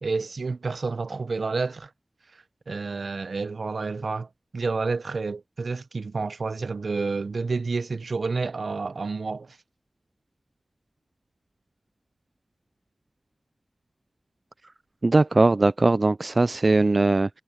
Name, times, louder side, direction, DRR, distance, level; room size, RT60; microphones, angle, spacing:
voice 1, 0.0-1.9 2.7-9.6, right 4 dB, 75° right, 0.7 m, -29 dB
voice 2, 15.0-17.3, right 2 dB, 45° right, 0.3 m, -20 dB
wide cardioid pair, 60°, 0 cm